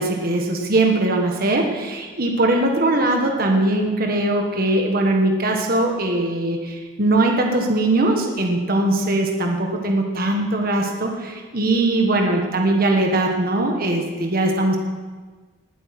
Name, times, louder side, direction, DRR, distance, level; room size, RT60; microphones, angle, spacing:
voice 1, 0.0-14.8, right 2 dB, 50° right, 2 dB, 1.5 m, -20 dB
19.5 x 8.0 x 5.9 m, 1.4 s
head